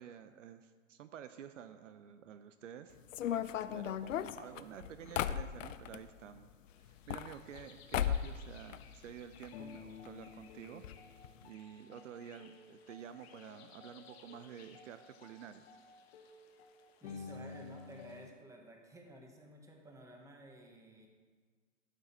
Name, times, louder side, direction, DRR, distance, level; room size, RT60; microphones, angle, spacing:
voice 1, 0.0-2.9 3.7-6.5 6.8-10.8 11.4-15.6, right 9 dB, 70° right, 11 dB, 0.7 m, -50 dB
sound 1, 3.1-6.0 6.9-7.7 7.9-8.4 8.7-9.5 9.8-9.9 10.1-10.2 10.8-11.0 11.2-11.4, left 10 dB, 75° left, 0.6 m, -36 dB
voice 2, 4.5-4.9 17.0-21.1, right 1 dB, 10° right, 2 dB, 1.3 m, -54 dB
sound 2, 6.7-18.3, left 5 dB, 50° left, 1.2 m, -53 dB
12.5 x 6.9 x 4.2 m, 1.5 s
hypercardioid pair, 120°, 39 cm